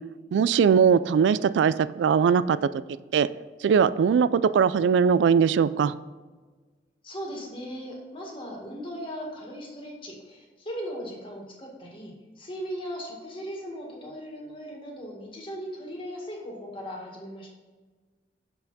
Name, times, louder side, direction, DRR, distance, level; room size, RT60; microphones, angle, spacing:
voice 1, 0.3-2.6 3.1-3.3 3.6-5.9, right 6 dB, 85° right, 16 dB, 0.3 m, -20 dB
voice 2, 7.0-17.5, equal, 30° left, -1 dB, 1.8 m, -38 dB
6.6 x 5.9 x 4.1 m, 1.4 s
head